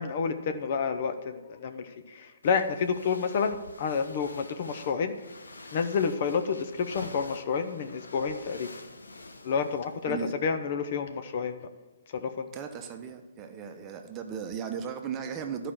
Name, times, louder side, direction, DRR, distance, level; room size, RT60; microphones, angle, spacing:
voice 1, 0.0-5.1 5.7-8.7 9.4-11.7 12.1-12.5, left 6 dB, 45° left, 0.8 m, -29 dB
sound 1, 2.4-10.2, left 2 dB, 80° left, 1.0 m, -47 dB
voice 2, 12.5-15.7, right 7 dB, 25° right, 0.9 m, -36 dB
12.0 x 5.1 x 7.3 m
figure-of-eight pair, 130°, 0 cm